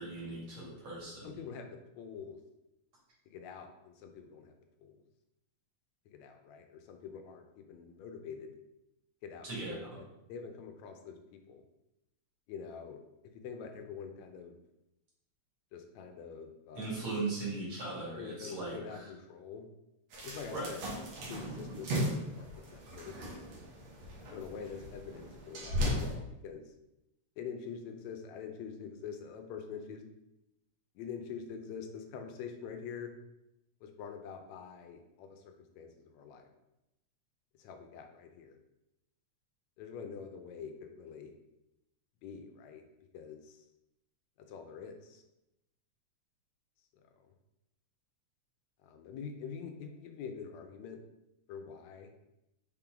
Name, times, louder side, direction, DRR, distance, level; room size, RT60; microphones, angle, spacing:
voice 1, 0.0-1.4 9.4-10.0 16.7-19.1 20.5-20.7, right 3 dB, 45° right, -6 dB, 3.0 m, -39 dB
voice 2, 1.2-2.4 3.3-4.5 4.8-5.0 6.1-8.5 9.2-11.6 12.5-14.6 15.7-17.0 17.9-19.7 20.2-23.3 24.3-26.7 27.4-30.0 31.0-33.1 33.8-36.5 37.6-38.6 39.8-41.3 42.2-42.8 43.1-43.7 44.5-45.2 48.8-51.0 51.5-52.1, left 6 dB, 75° left, 5 dB, 1.9 m, -45 dB
sound 1, 20.1-26.1, equal, 65° right, 2.3 m, -37 dB
5.8 x 4.3 x 3.8 m, 0.89 s
omnidirectional pair, 3.3 m